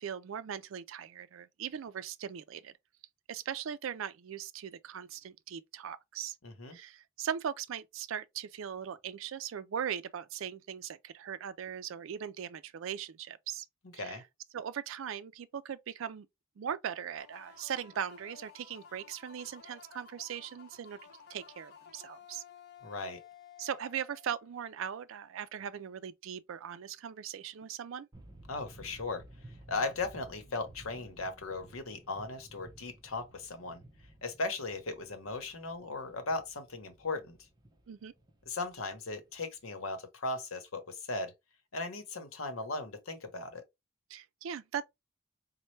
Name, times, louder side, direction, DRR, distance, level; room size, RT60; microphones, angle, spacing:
voice 1, 0.0-2.7 3.3-6.4 6.7-13.7 13.9-14.2 14.5-16.3 16.6-21.0 21.3-22.4 23.6-28.1 37.9-38.1 44.1-44.8, right 8 dB, 70° right, 0.4 m, -39 dB
voice 2, 6.4-6.8 14.0-14.2 22.8-23.2 28.5-33.8 34.2-37.4 38.5-41.3 41.7-43.6, left 3 dB, 85° left, 0.9 m, -37 dB
sound 1, 17.2-24.8, left 6 dB, 50° left, 0.7 m, -55 dB
sound 2, 28.1-39.6, right 1 dB, 20° right, 0.7 m, -56 dB
4.2 x 2.2 x 3.1 m
head